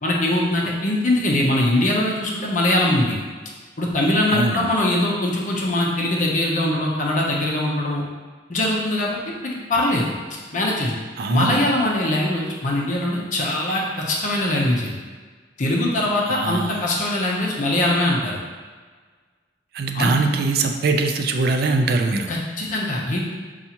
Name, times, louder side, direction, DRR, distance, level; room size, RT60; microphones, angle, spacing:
voice 1, 0.0-3.2 3.8-8.0 8.5-10.1 10.5-10.9 11.3-15.0 15.6-18.4 19.9-20.4 22.3-23.2, left 1 dB, 45° left, -2 dB, 0.6 m, -22 dB
voice 2, 4.3-4.7 11.2-11.7 16.3-16.8 19.7-22.3, right 3 dB, 60° right, 5 dB, 0.4 m, -22 dB
5.5 x 2.4 x 2.8 m, 1.5 s
head